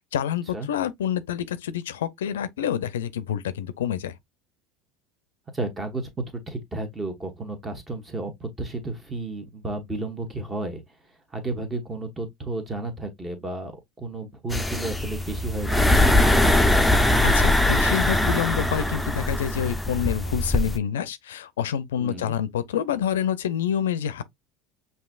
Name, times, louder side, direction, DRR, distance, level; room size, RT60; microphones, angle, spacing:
voice 1, 0.0-4.2 17.2-24.2, left 9 dB, 90° left, 0.4 m, -27 dB
voice 2, 5.5-6.1 6.5-10.8 11.3-13.7 14.0-16.7 22.0-22.3, right 2 dB, 20° right, 1.3 m, -32 dB
sound 1, 14.5-20.8, left 1 dB, 5° left, 0.5 m, -21 dB
5.5 x 2.7 x 2.3 m
hypercardioid pair, 90°, 0 cm